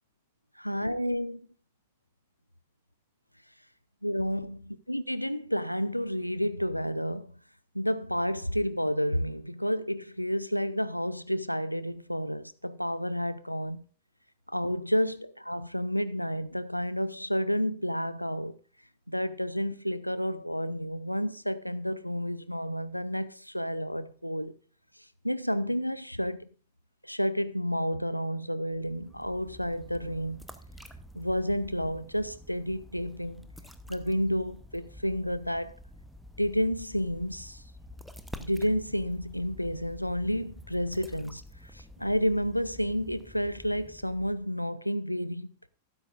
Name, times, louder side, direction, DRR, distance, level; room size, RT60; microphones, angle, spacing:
voice 1, 0.6-1.4 4.0-7.3 7.7-13.8 14.5-18.5 19.1-24.6 25.2-26.5 27.0-30.4 31.1-33.4 33.9-35.7 36.4-37.6 38.4-41.4 41.7-45.5, equal, 90° left, 0.5 m, -30 dB
sound 1, 28.7-44.6, equal, ahead, 1.0 m, -49 dB
13.0 x 12.5 x 2.6 m
figure-of-eight pair, 90°, 0 cm